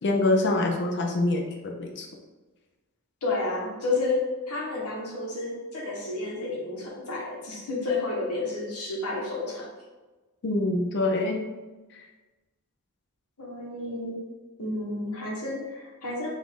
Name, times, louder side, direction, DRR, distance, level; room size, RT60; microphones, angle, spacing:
voice 1, 0.0-2.1 10.4-11.4 11.9-12.1, left 2 dB, 55° left, 2 dB, 0.5 m, -25 dB
voice 2, 3.2-9.7 13.4-14.2 14.6-16.3, left 2 dB, 80° left, -3 dB, 1.3 m, -31 dB
5.2 x 2.5 x 3.6 m, 1.2 s
head